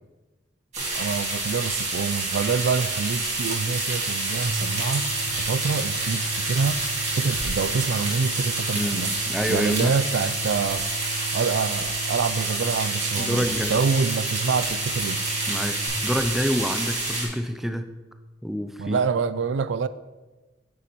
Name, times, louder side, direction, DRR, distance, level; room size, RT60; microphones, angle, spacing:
sound 1, 0.7-17.3, right 2 dB, 35° right, 2.2 m, -28 dB
voice 1, 0.9-5.1 5.4-6.8 7.1-9.1 9.5-10.9 11.3-15.2 18.8-19.9, right 5 dB, 70° right, 0.3 m, -26 dB
sound 2, 4.4-15.9, right 3 dB, 85° right, 2.7 m, -37 dB
voice 2, 8.7-9.9 13.2-13.8 15.5-17.9 18.4-19.0, equal, ahead, 0.4 m, -27 dB
9.3 x 6.9 x 3.0 m
head